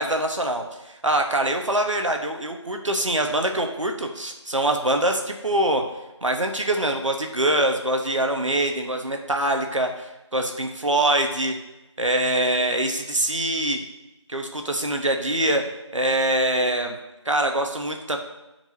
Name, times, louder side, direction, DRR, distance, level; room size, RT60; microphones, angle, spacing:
voice 1, 0.0-5.8 6.2-11.6 12.0-13.8 14.3-15.6 15.9-17.0 17.2-18.2, right 1 dB, 90° right, 3 dB, 1.1 m, -24 dB
9.3 x 4.6 x 2.7 m, 0.98 s
figure-of-eight pair, 180°, 16 cm